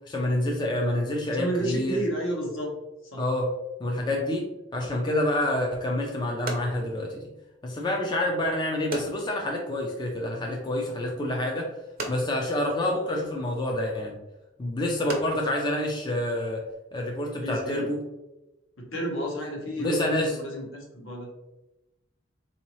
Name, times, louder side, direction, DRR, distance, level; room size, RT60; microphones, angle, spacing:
voice 1, 0.1-2.0 3.2-3.5 3.8-4.5 4.7-7.3 7.6-11.7 12.1-14.2 14.6-16.6 16.9-18.0 19.8-20.4, left 1 dB, 20° left, 0 dB, 0.4 m, -27 dB
voice 2, 1.3-2.7 3.1-3.2 17.4-17.9 18.8-21.3, right 1 dB, 75° left, -1 dB, 1.1 m, -31 dB
sound 1, 6.0-16.8, right 2 dB, 45° right, 0.6 m, -42 dB
3.8 x 2.8 x 3.0 m, 0.98 s
head